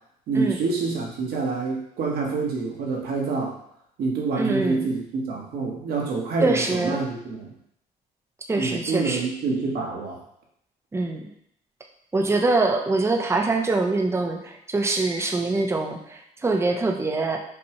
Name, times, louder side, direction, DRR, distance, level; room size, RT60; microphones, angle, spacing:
voice 1, 0.3-3.6 4.0-7.5 8.5-10.2, right 4 dB, 65° right, -1 dB, 1.1 m, -27 dB
voice 2, 4.4-4.9 6.4-7.0 8.5-9.2 10.9-11.3 12.1-17.4, right 3 dB, 15° right, 3 dB, 0.5 m, -24 dB
5.3 x 2.2 x 2.9 m, 0.72 s
cardioid pair, 110°, 17 cm